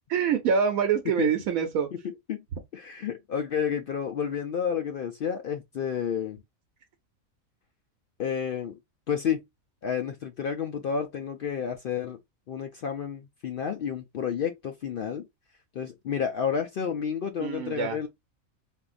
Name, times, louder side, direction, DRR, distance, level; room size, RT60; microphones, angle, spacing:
voice 1, 0.1-1.9 17.4-18.1, right 7 dB, 90° right, 1.1 m, -26 dB
voice 2, 2.7-6.4 8.2-8.8 9.1-9.4 9.8-12.2 12.5-15.3 15.7-18.1, left 7 dB, 70° left, 0.5 m, -30 dB
3.6 x 2.6 x 2.4 m
omnidirectional pair, 1.4 m